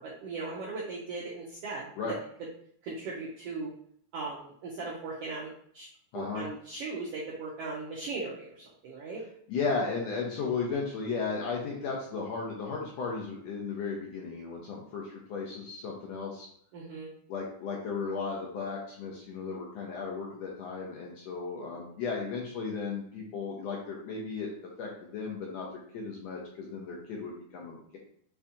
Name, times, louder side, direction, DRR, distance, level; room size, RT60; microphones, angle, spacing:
voice 1, 0.0-1.9 2.8-3.7 4.1-5.9 6.1-9.2 16.7-17.1, right 3 dB, 85° right, -5 dB, 1.4 m, -38 dB
voice 2, 9.5-16.5 17.3-24.5 24.8-25.7 25.9-28.0, left 4 dB, 75° left, -2 dB, 1.6 m, -35 dB
6.8 x 2.4 x 2.7 m, 0.62 s
omnidirectional pair, 3.6 m